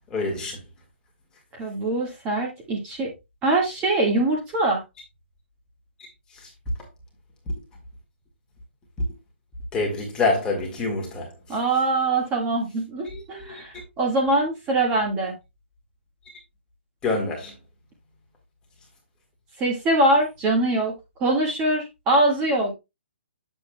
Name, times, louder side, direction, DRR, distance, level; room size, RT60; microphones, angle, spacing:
voice 1, 0.1-0.6 9.7-11.3 13.1-13.6 17.0-17.5, left 3 dB, 10° left, 1.7 m, -26 dB
voice 2, 1.6-3.1 3.4-4.8 11.5-15.3 19.6-20.9 21.2-22.7, right 2 dB, 15° right, 1.7 m, -23 dB
8.2 x 7.0 x 2.2 m
hypercardioid pair, 160°, 7 cm